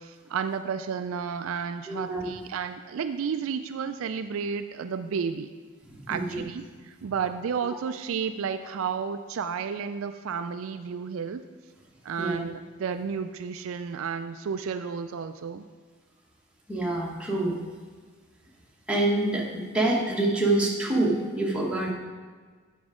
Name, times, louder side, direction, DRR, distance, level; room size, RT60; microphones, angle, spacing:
voice 1, 0.0-5.5 6.1-11.4 12.0-15.6, right 6 dB, 65° right, 9 dB, 0.3 m, -32 dB
voice 2, 1.9-2.4 5.9-6.4 12.2-12.4 16.7-17.6 18.9-21.9, right 2 dB, 5° right, -4 dB, 1.2 m, -26 dB
8.3 x 6.1 x 4.9 m, 1.5 s
head